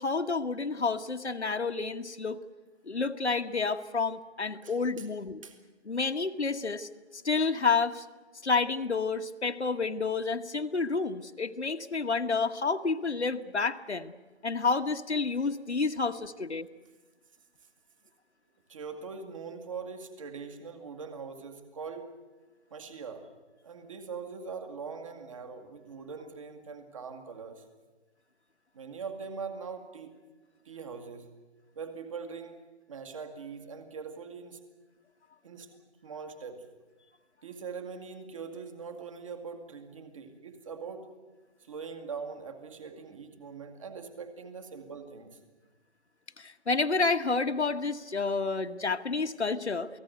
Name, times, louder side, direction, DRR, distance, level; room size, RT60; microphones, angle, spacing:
voice 1, 0.0-2.4 2.9-5.4 5.8-8.0 8.4-14.1 14.4-16.7 46.4-49.9, left 4 dB, 75° left, 7 dB, 1.4 m, -29 dB
voice 2, 4.6-5.1 5.4-5.6 18.7-22.1 22.7-23.3 23.6-27.6 28.7-30.1 30.7-31.3 31.8-32.6 32.9-34.6 35.4-36.7 37.4-41.1 41.6-45.4, right 5 dB, 30° right, 7 dB, 2.3 m, -42 dB
28.5 x 18.5 x 8.0 m, 1.2 s
figure-of-eight pair, 155°, 34 cm